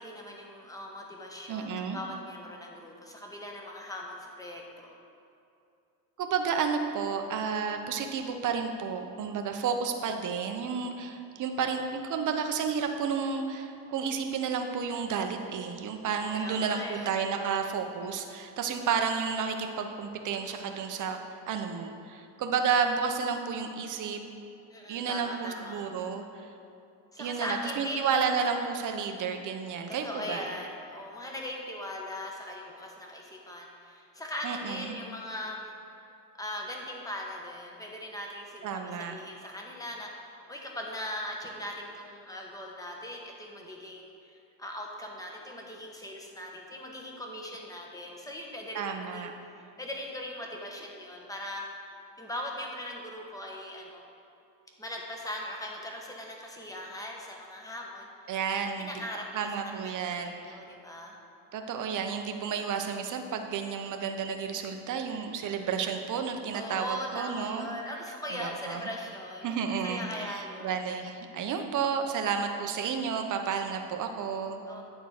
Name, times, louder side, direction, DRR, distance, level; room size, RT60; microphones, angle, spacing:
voice 1, 0.0-5.0 16.2-17.2 24.7-25.8 27.1-28.3 29.9-35.7 36.4-49.3 49.8-51.7 52.2-54.0 54.8-58.4 58.8-61.2 66.5-69.5 69.8-70.8 74.7-74.8, left 1 dB, 5° left, -1 dB, 1.2 m, -40 dB
voice 2, 1.5-2.0 6.2-21.2 21.5-24.2 24.9-26.5 27.2-30.4 34.4-35.0 38.6-39.2 48.7-49.3 58.3-58.9 59.3-60.6 61.5-67.7 68.3-68.8 69.4-74.6, right 6 dB, 40° right, 5 dB, 0.8 m, -31 dB
9.3 x 3.9 x 6.5 m, 2.6 s
supercardioid pair, 105°, 49 cm